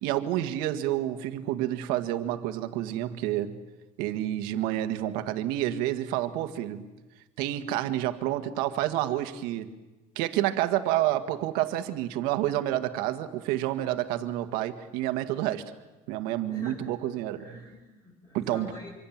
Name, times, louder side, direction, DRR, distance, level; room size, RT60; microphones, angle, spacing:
voice 1, 0.0-3.6 4.0-6.9 7.4-9.7 10.2-15.6 16.1-17.6 18.3-18.7, right 13 dB, 75° right, 8 dB, 1.8 m, -29 dB
voice 2, 16.5-16.9 17.4-18.9, left 1 dB, 20° left, -1 dB, 5.5 m, -46 dB
25.5 x 25.0 x 7.4 m, 1.1 s
cardioid pair, 160°, 15 cm